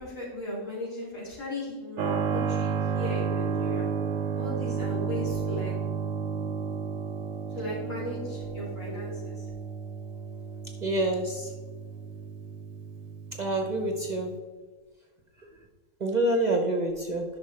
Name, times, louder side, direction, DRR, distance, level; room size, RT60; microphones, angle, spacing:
voice 1, 0.0-3.8 4.3-5.7 7.5-9.4, left 1 dB, 70° left, -6 dB, 3.2 m, -37 dB
Keyboard (musical), 2.0-14.4, right 6 dB, 80° right, 1.0 m, -32 dB
voice 2, 10.8-11.5 13.4-14.3 16.0-17.2, right 1 dB, 40° right, 2 dB, 0.8 m, -27 dB
10.5 x 5.9 x 3.3 m, 1.4 s
omnidirectional pair, 1.4 m